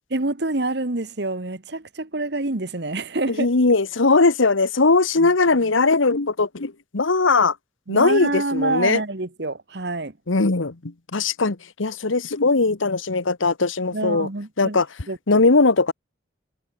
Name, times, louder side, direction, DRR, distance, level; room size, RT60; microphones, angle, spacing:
voice 1, 0.1-3.5 7.9-10.2 13.9-15.4, right 2 dB, 55° right, 1.4 m, -27 dB
voice 2, 3.4-7.5 7.9-9.0 10.3-14.3 14.6-14.9 15.3-15.9, left 3 dB, 80° left, 1.2 m, -19 dB
head